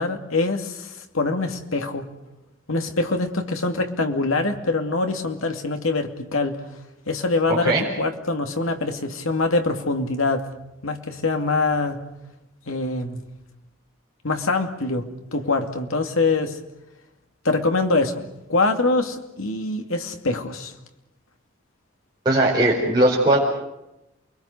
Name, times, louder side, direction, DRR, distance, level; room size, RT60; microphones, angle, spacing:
voice 1, 0.0-2.1 2.7-6.6 7.1-10.5 10.8-12.0 12.7-13.2 14.2-16.6 17.4-18.2 18.5-20.7, left 3 dB, 90° left, 5 dB, 2.5 m, -24 dB
voice 2, 22.2-23.4, right 1 dB, 20° right, -6 dB, 5.1 m, -18 dB
28.5 x 22.5 x 6.7 m, 0.90 s
head